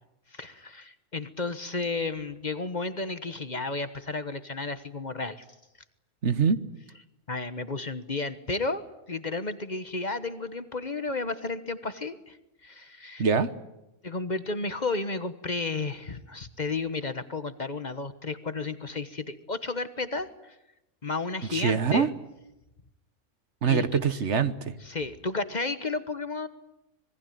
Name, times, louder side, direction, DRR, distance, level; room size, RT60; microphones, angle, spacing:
voice 1, 0.3-5.4 7.3-12.4 12.6-13.2 14.0-20.6 21.0-22.1 23.7-24.0 24.8-26.5, left 3 dB, 35° left, 11 dB, 1.3 m, -32 dB
voice 2, 6.2-6.6 13.2-13.5 21.5-22.1 23.6-24.7, right 6 dB, 65° right, 12 dB, 1.5 m, -24 dB
26.0 x 21.0 x 9.3 m, 0.91 s
omnidirectional pair, 1.3 m